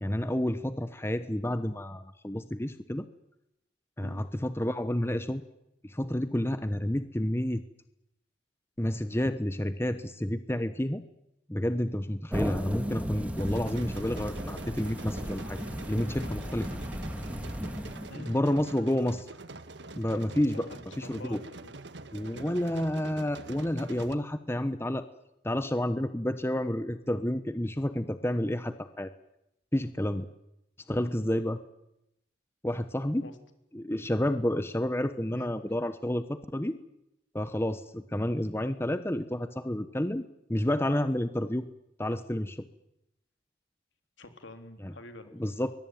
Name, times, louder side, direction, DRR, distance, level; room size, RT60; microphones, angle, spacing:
voice 1, 0.0-3.1 4.0-5.4 5.8-7.6 8.8-11.0 11.5-15.6 15.9-16.7 18.1-19.3 19.9-20.7 21.0-21.4 22.1-25.1 25.4-29.1 29.7-30.3 30.9-31.6 32.6-33.2 33.7-36.8 37.3-41.6 42.0-42.6 44.8-44.9 45.4-45.7, left 1 dB, 15° left, 11 dB, 1.0 m, -30 dB
sound 1, 12.3-18.2, equal, 5° right, 2.2 m, -35 dB
sound 2, 13.4-24.2, right 2 dB, 65° right, 1.5 m, -45 dB
voice 2, 20.5-21.8 22.3-22.7 33.2-33.3 35.3-35.5 44.2-45.3, left 1 dB, 80° left, 7 dB, 3.7 m, -46 dB
24.0 x 21.5 x 9.3 m, 0.83 s
head